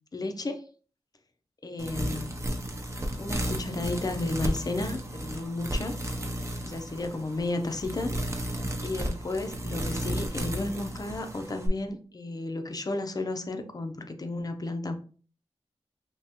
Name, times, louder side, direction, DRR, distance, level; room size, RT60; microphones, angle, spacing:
voice 1, 0.1-0.6 1.6-2.3 2.9-5.9 6.6-8.1 8.8-14.9, left 2 dB, 35° left, 7 dB, 0.5 m, -33 dB
sound 1, 1.8-11.7, right 1 dB, 25° right, 0.6 m, -33 dB
3.4 x 2.9 x 2.8 m, 0.41 s
wide cardioid pair, 100°, 11 cm